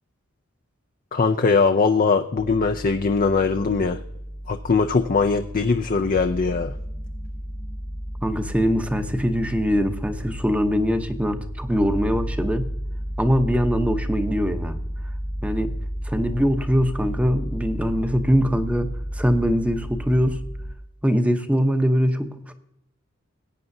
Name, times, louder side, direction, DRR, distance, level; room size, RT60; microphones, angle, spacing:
voice 1, 1.1-4.0 4.5-6.7, left 4 dB, 40° left, 7 dB, 0.5 m, -21 dB
sound 1, 2.4-20.7, equal, 20° left, 0.9 m, -32 dB
voice 2, 8.2-12.7 13.2-14.8 15.4-15.7 16.0-20.4 21.0-22.5, equal, 5° right, 8 dB, 0.8 m, -22 dB
18.0 x 9.0 x 2.7 m, 0.79 s
head